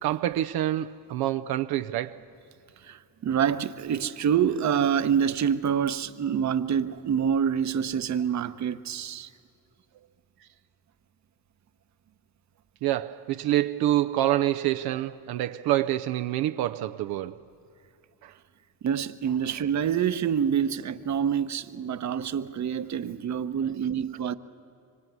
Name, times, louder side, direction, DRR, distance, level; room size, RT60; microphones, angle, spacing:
voice 1, 0.0-2.2 12.8-17.4 18.2-18.3, right 13 dB, 80° right, 0.7 m, -27 dB
voice 2, 2.8-9.3 18.8-24.3, right 8 dB, 50° right, 1.0 m, -26 dB
25.5 x 24.5 x 9.4 m
cardioid pair, 95°, 36 cm